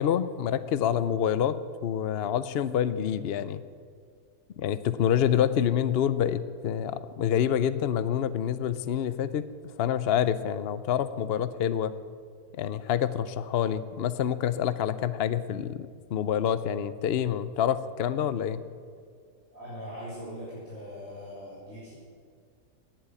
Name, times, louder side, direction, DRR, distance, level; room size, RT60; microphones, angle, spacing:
voice 1, 0.0-1.6 1.8-3.6 4.6-9.4 9.8-11.9 12.5-18.6, left 9 dB, 70° left, 14 dB, 0.6 m, -27 dB
voice 2, 19.5-21.9, equal, 50° left, -11 dB, 6.1 m, -41 dB
19.0 x 7.6 x 8.9 m, 2.1 s
omnidirectional pair, 1.8 m